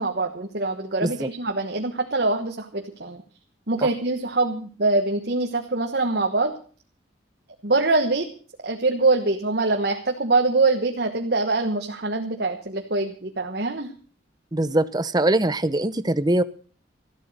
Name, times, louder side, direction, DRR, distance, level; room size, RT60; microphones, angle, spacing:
voice 1, 0.0-3.2 3.7-6.5 7.6-8.3 8.6-13.9, right 3 dB, 55° right, 4 dB, 1.3 m, -24 dB
voice 2, 14.5-16.4, right 1 dB, 20° right, 14 dB, 0.7 m, -22 dB
14.0 x 13.0 x 6.6 m, 0.41 s
head